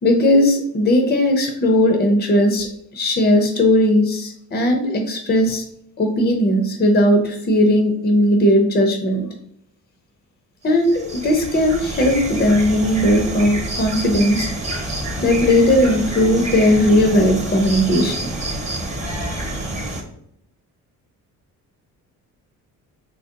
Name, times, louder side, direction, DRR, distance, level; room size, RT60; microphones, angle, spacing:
voice 1, 0.0-2.7 2.9-5.6 6.0-9.3 10.6-14.5 15.2-18.2 19.1-19.7, left 1 dB, 30° left, 4 dB, 0.6 m, -17 dB
sound 1, 10.7-20.0, right 1 dB, 20° right, 0.9 m, -28 dB
3.8 x 3.0 x 2.7 m, 0.72 s
cardioid pair, 115°, 35 cm